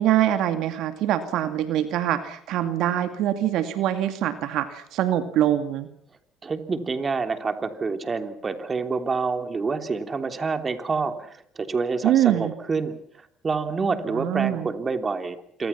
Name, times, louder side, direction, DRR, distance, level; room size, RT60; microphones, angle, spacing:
voice 1, 0.0-5.9 12.0-12.5 14.1-14.7, right 12 dB, 70° right, 9 dB, 2.3 m, -24 dB
voice 2, 6.4-13.0 13.4-15.7, right 4 dB, 30° right, 8 dB, 3.3 m, -27 dB
28.0 x 25.0 x 5.9 m, 0.63 s
supercardioid pair, 90°, 0 cm